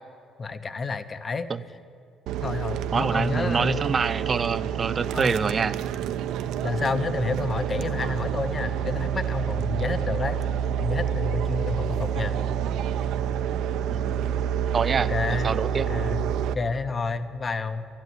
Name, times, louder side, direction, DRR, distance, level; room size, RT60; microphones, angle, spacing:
voice 1, 0.4-1.5 2.4-3.9 5.1-5.3 6.6-10.4 10.8-12.3 15.0-15.5 15.9-17.9, left 4 dB, 30° left, 12 dB, 0.7 m, -29 dB
sound 1, 2.3-16.5, right 9 dB, 80° right, 0.6 m, -28 dB
voice 2, 2.9-5.8 13.9-14.1 14.7-15.1 15.4-15.9, right 5 dB, 30° right, 15 dB, 0.5 m, -26 dB
12.0 x 10.5 x 9.5 m, 2.5 s
cardioid pair, 125°, 0 cm